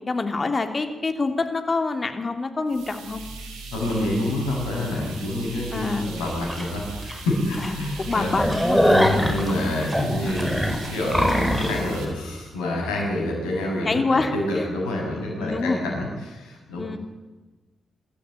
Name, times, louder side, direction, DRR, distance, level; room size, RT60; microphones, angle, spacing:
voice 1, 0.1-3.2 5.7-6.1 7.6-8.8 9.1-9.3 13.8-14.6 15.4-15.8 16.7-17.0, left 3 dB, 40° left, 6 dB, 3.1 m, -26 dB
sound 1, 2.7-12.1, right 3 dB, 85° right, 3.8 m, -39 dB
voice 2, 3.7-17.0, left 1 dB, 85° left, 0 dB, 7.0 m, -28 dB
sound 2, 6.5-6.6 7.1-7.2 7.5-7.7 8.0-11.8, equal, 5° right, 5.7 m, -22 dB
24.0 x 13.5 x 9.2 m, 1.2 s
hypercardioid pair, 40°, 0 cm